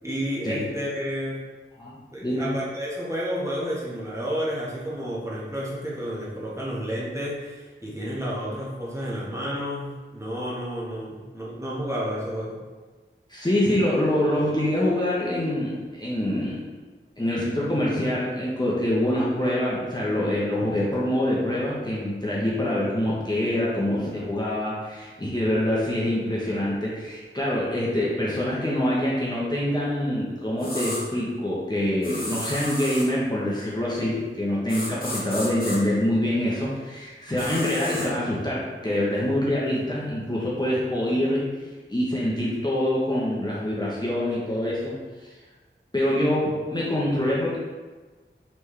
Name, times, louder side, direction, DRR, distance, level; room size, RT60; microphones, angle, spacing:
voice 1, 0.0-1.4 2.1-12.6, equal, 15° right, -7 dB, 1.2 m, -31 dB
voice 2, 1.8-2.5 13.3-16.6 17.2-41.5 41.9-44.9 45.2-45.3 45.9-47.6, left 1 dB, 20° left, -7 dB, 0.9 m, -25 dB
sound 1, 30.6-31.0 32.0-33.1 34.7-35.8 37.4-38.1, left 1 dB, 45° left, 1.2 m, -33 dB
4.1 x 3.4 x 3.2 m, 1.3 s
wide cardioid pair, 45°, 21 cm